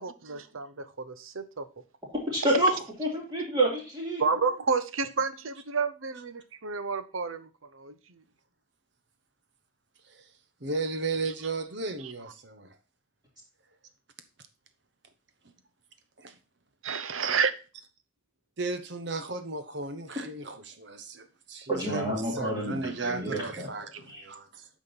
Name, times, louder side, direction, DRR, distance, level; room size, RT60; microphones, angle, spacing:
voice 1, 0.0-1.7 4.2-7.9 16.8-17.5, right 5 dB, 90° right, 0.9 m, -30 dB
voice 2, 2.1-4.2 21.7-23.7 24.1-24.2, right 1 dB, 20° right, 3.4 m, -28 dB
voice 3, 10.6-12.7 16.2-16.3 18.6-24.7, right 3 dB, 60° right, 1.0 m, -35 dB
9.0 x 5.2 x 4.0 m
head